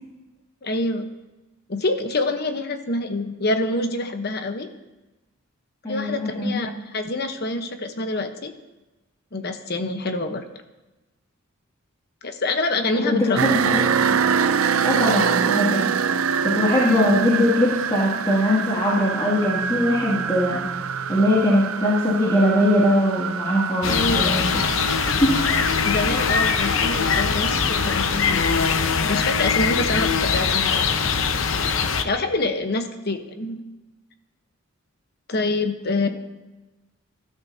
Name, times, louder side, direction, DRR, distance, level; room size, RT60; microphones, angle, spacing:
voice 1, 0.6-1.1 1.7-4.7 5.9-8.5 9.3-10.4 12.2-13.6 23.9-24.4 25.8-28.5 29.0-30.8 32.0-33.6 35.3-36.1, left 2 dB, 50° left, 6 dB, 1.1 m, -26 dB
voice 2, 5.8-6.6 13.0-14.2 14.8-15.9 16.4-20.7 21.1-24.4 25.2-25.3, left 1 dB, 20° left, -6 dB, 2.5 m, -21 dB
sound 1, 13.4-28.1, right 7 dB, 90° right, 0.5 m, -25 dB
sound 2, 23.8-32.0, left 6 dB, 70° left, 0.8 m, -22 dB
20.5 x 12.5 x 2.8 m, 1.1 s
head